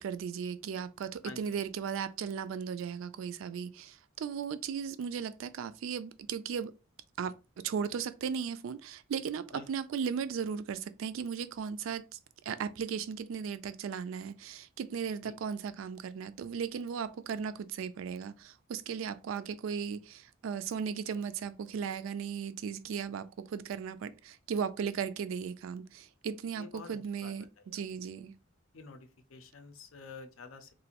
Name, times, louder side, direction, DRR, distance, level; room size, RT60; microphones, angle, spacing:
voice 1, 0.0-6.7 7.2-12.2 12.5-27.4 27.7-28.3, right 7 dB, 75° right, 0.3 m, -36 dB
voice 2, 1.2-1.7 9.5-9.7 15.2-15.4 19.3-19.4 26.5-27.8 28.7-30.7, left 4 dB, 75° left, 0.5 m, -49 dB
3.0 x 2.5 x 2.8 m
head